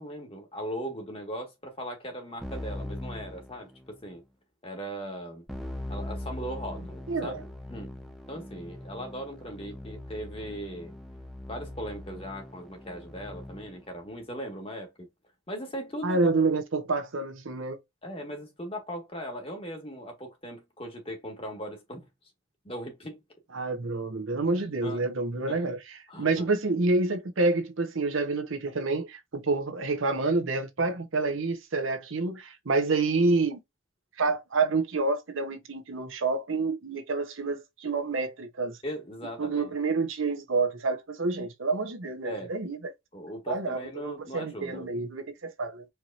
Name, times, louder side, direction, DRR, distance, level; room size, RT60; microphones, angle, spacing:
voice 1, 0.0-4.2 4.6-5.4 5.9-7.9 8.3-10.9 11.5-15.1 15.5-16.3 18.0-22.0 22.6-23.2 24.5-25.0 25.5-25.7 26.1-26.5 38.8-39.7 42.2-42.6 43.1-44.9, equal, 30° left, 1.3 m, -39 dB
Keyboard (musical), 2.4-4.1 5.5-13.9, left 1 dB, ahead, 0.6 m, -41 dB
voice 2, 7.1-7.4 16.0-17.8 23.5-33.6 34.2-38.8 39.4-42.8 43.5-45.9, right 3 dB, 90° right, 0.9 m, -28 dB
4.7 x 2.9 x 2.4 m
head